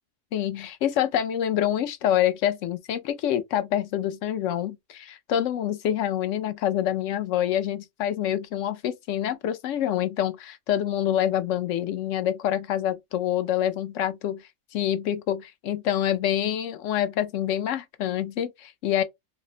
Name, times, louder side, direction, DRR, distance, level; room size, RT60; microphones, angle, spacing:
voice 1, 0.3-14.4 14.7-19.0, left 11 dB, 75° left, 1.0 m, -26 dB
3.3 x 2.1 x 3.8 m
omnidirectional pair, 1.3 m